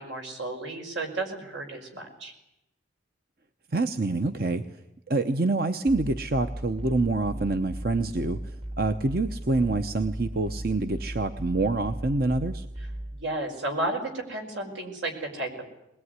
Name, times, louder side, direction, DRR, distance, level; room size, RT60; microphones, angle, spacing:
voice 1, 0.0-2.3 13.1-15.7, right 2 dB, 80° right, 3 dB, 5.4 m, -33 dB
voice 2, 3.7-4.6 5.1-12.7, right 2 dB, 50° right, 9 dB, 0.9 m, -26 dB
sound 1, 5.9-13.2, right 1 dB, 30° right, 1.2 m, -37 dB
21.0 x 21.0 x 9.6 m, 0.89 s
head